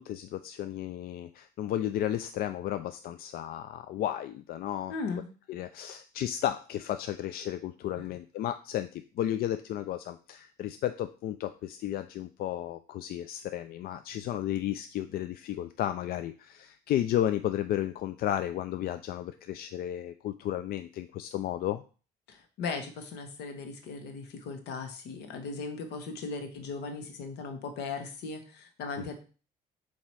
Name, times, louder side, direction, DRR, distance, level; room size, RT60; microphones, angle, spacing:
voice 1, 0.0-4.9 5.5-21.8, left 12 dB, 60° left, 10 dB, 0.4 m, -33 dB
voice 2, 4.9-5.3 8.0-8.1 22.3-29.1, left 4 dB, 80° left, 6 dB, 1.3 m, -38 dB
7.3 x 2.9 x 4.7 m, 0.37 s
cardioid pair, 110°, 17 cm